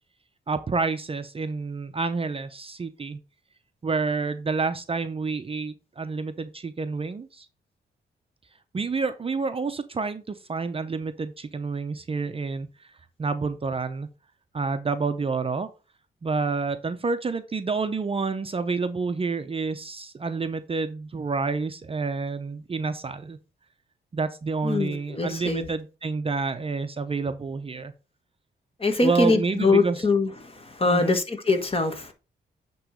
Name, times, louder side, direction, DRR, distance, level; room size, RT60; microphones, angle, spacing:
voice 1, 0.5-3.2 3.8-7.5 8.7-12.7 13.2-14.1 14.5-15.7 16.2-23.4 24.1-27.9 29.0-30.0 30.8-31.2, right 4 dB, 30° right, 0.6 m, -28 dB
voice 2, 24.6-25.7 28.8-32.1, left 3 dB, 30° left, 1.4 m, -23 dB
8.9 x 3.1 x 5.0 m
cardioid pair, 95°, 18 cm